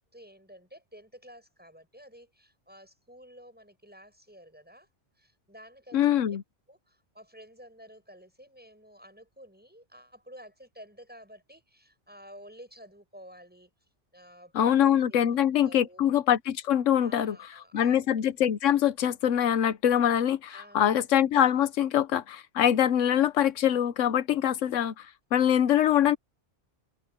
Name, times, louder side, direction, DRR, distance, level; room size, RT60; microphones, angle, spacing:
voice 1, 0.1-4.9 5.2-6.2 6.7-13.7 14.1-16.1 16.9-18.1 20.5-21.1, equal, 5° right, 6.7 m, -51 dB
voice 2, 5.9-6.4 14.5-17.4 17.7-26.2, left 10 dB, 85° left, 1.1 m, -24 dB
omnidirectional pair, 1.3 m